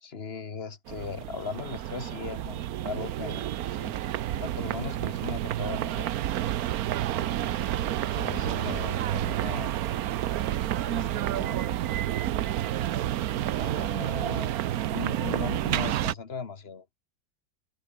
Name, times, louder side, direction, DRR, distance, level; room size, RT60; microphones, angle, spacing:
voice 1, 0.0-2.6 2.8-3.9 4.3-6.1 7.3-9.8 10.8-11.9 13.6-14.5 14.9-16.9, left 5 dB, 45° left, 1.7 m, -38 dB
sound 1, 0.9-16.1, right 12 dB, 85° right, 1.2 m, -30 dB
omnidirectional pair, 1.5 m